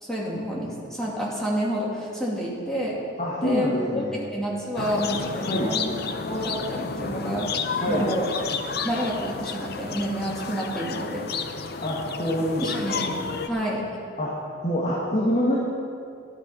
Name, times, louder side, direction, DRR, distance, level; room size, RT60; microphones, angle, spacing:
voice 1, 0.0-3.0 3.4-4.0 4.3-6.0 6.3-8.3 8.8-11.7 12.6-13.1 13.5-13.8, equal, ahead, -6 dB, 2.7 m, -29 dB
voice 2, 3.2-4.2 5.4-5.7 7.8-8.1 11.8-13.0 14.2-14.3 14.6-15.6, left 1 dB, 40° left, -5 dB, 1.9 m, -26 dB
sound 1, 4.8-13.5, left 5 dB, 55° left, 0.7 m, -31 dB
13.0 x 11.0 x 5.8 m, 2.4 s
head